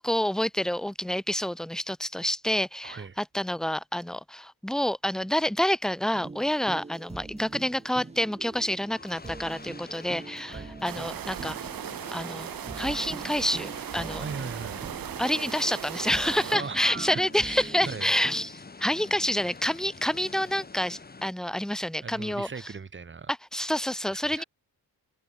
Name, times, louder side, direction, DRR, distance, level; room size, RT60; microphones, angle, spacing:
voice 1, 0.0-11.6 12.1-12.5 12.8-14.2 15.2-22.5 23.3-24.4, left 1 dB, ahead, 0.8 m, -28 dB
voice 2, 2.8-3.2 10.5-10.7 14.2-14.8 16.5-18.1 22.0-23.3 24.1-24.4, right 5 dB, 35° right, 2.5 m, -38 dB
sound 1, 6.1-18.5, right 3 dB, 20° right, 1.6 m, -44 dB
sound 2, 7.3-21.3, left 4 dB, 25° left, 4.0 m, -47 dB
sound 3, 10.8-16.6, right 10 dB, 70° right, 3.1 m, -37 dB
cardioid pair, 110°, 36 cm